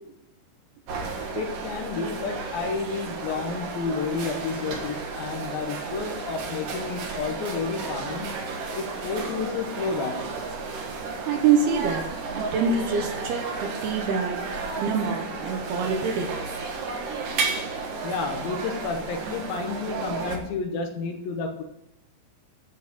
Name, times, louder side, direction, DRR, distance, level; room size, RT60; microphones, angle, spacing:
sound 1, 0.9-20.4, right 4 dB, 60° right, 3.0 m, -33 dB
voice 1, 1.3-8.3 8.7-10.3 18.0-21.6, left 5 dB, 75° left, 4 dB, 2.5 m, -31 dB
voice 2, 11.3-12.0 12.3-14.4 14.8-16.3 17.4-17.9, right 6 dB, 80° right, 2 dB, 3.0 m, -25 dB
13.0 x 4.7 x 7.4 m, 0.87 s
omnidirectional pair, 4.6 m